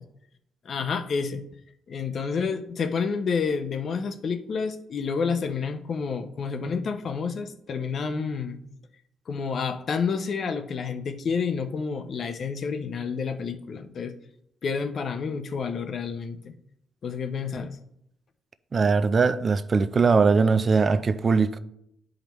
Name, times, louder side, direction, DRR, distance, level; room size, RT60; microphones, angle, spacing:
voice 1, 0.6-1.4 1.9-8.6 9.3-14.1 14.6-16.5 17.0-17.8, left 5 dB, 55° left, 0.7 m, -29 dB
voice 2, 18.7-21.6, right 4 dB, 40° right, 0.4 m, -21 dB
10.5 x 5.0 x 3.1 m
cardioid pair, 90°, 0 cm